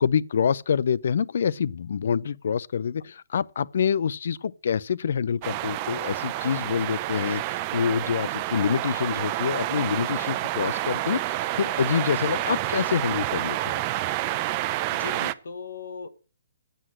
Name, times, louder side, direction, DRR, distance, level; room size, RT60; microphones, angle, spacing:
voice 1, 0.0-13.8, left 7 dB, 60° left, 0.4 m, -26 dB
sound 1, 5.4-15.3, right 15 dB, 25° right, 0.5 m, -29 dB
voice 2, 14.9-16.1, left 5 dB, 80° left, 1.2 m, -38 dB
7.9 x 7.9 x 7.4 m
hypercardioid pair, 160°, 0 cm